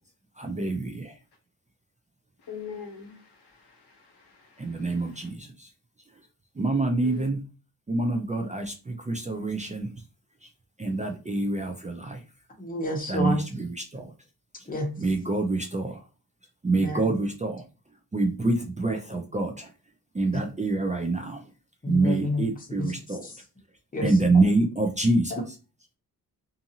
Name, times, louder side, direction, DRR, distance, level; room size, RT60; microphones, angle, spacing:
voice 1, 0.4-1.1 4.6-5.7 6.6-7.4 7.9-9.9 10.8-12.2 13.1-14.1 15.0-16.0 16.6-17.6 18.1-19.7 20.1-21.4 21.9-23.2 24.0-25.4, right 2 dB, 20° right, 0.4 m, -26 dB
voice 2, 2.4-5.3 7.0-7.3, left 6 dB, 90° left, 0.9 m, -44 dB
voice 3, 12.6-13.4 14.7-14.9 16.8-17.2 20.3-20.4 21.8-22.4 22.8-23.4 23.9-24.3 25.3-25.4, left 1 dB, 20° left, 0.8 m, -30 dB
2.6 x 2.5 x 2.7 m
wide cardioid pair, 90°, 39 cm